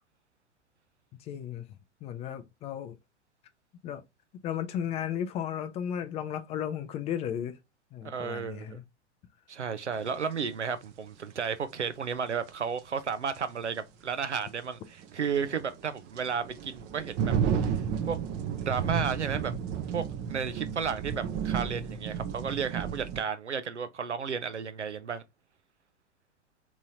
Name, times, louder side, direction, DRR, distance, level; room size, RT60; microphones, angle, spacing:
voice 1, 1.2-1.7 2.0-3.0 3.8-4.0 4.4-7.6 7.9-8.8, left 9 dB, 20° left, 0.4 m, -34 dB
voice 2, 8.0-8.8 9.5-17.4 17.6-17.7 18.1-18.2 18.5-19.5 19.9-25.2, right 6 dB, 90° right, 0.6 m, -33 dB
sound 1, 10.2-10.3 12.8-12.9 13.3-13.4 15.0-23.2, right 7 dB, 30° right, 0.6 m, -32 dB
3.6 x 3.0 x 2.7 m
figure-of-eight pair, 95°, 34 cm